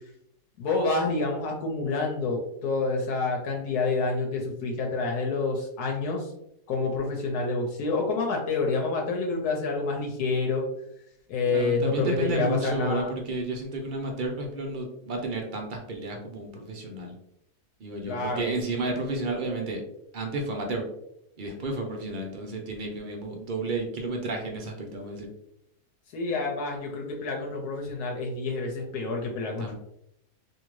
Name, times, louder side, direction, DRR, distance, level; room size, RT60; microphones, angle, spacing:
voice 1, 0.6-6.3 6.7-10.7 11.3-13.1 18.1-18.5 26.1-29.8, left 3 dB, 85° left, 0 dB, 1.2 m, -28 dB
voice 2, 11.5-17.2 17.8-19.8 20.1-20.8 21.4-25.3 29.6-29.7, right 2 dB, 60° right, 1 dB, 0.5 m, -32 dB
3.6 x 2.7 x 3.0 m, 0.79 s
omnidirectional pair, 1.6 m